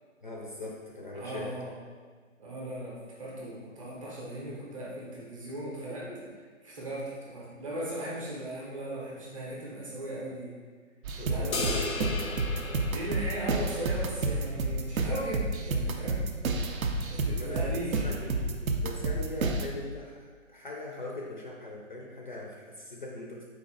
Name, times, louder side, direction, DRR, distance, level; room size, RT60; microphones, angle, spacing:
voice 1, 0.2-1.6 6.0-6.3 11.2-12.8 17.3-17.7 18.0-23.5, left 2 dB, 40° left, -2 dB, 0.4 m, -41 dB
voice 2, 1.1-1.7 2.4-6.1 6.6-10.6 11.2-11.8 12.3-12.6 12.9-16.3 17.0-18.0, right 1 dB, 25° right, -5 dB, 0.7 m, -38 dB
sound 1, 11.0-19.7, right 2 dB, 90° right, 0.6 m, -30 dB
sound 2, 11.5-14.1, left 3 dB, 85° left, 0.7 m, -35 dB
4.1 x 2.5 x 3.9 m, 1.5 s
figure-of-eight pair, 145°, 40 cm